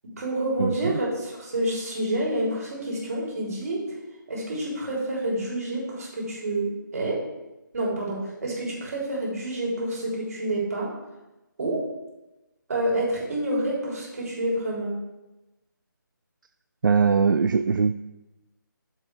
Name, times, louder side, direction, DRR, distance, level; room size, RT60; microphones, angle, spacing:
voice 1, 0.2-3.8 4.3-6.7 6.9-7.2 7.7-10.9 11.6-11.8 12.7-14.9, right 1 dB, 50° right, -4 dB, 3.6 m, -28 dB
voice 2, 16.8-18.0, right 5 dB, 70° right, 11 dB, 0.4 m, -21 dB
9.9 x 7.6 x 3.4 m, 1.0 s
figure-of-eight pair, 155°, 11 cm